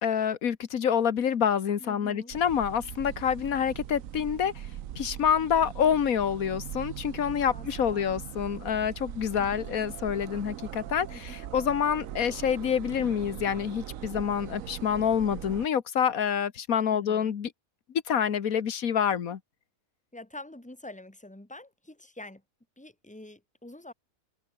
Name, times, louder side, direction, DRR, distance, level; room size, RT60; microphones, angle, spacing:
voice 1, 0.0-4.5 5.0-17.5 18.1-19.4, left 8 dB, 75° left, 1.7 m, -27 dB
voice 2, 1.8-2.3 7.5-8.1 9.3-9.6 11.1-11.4 16.9-17.3 20.1-22.4 22.8-23.9, left 1 dB, 5° left, 2.5 m, -46 dB
sound 1, 2.3-15.7, right 11 dB, 75° right, 1.2 m, -41 dB
omnidirectional pair, 1.5 m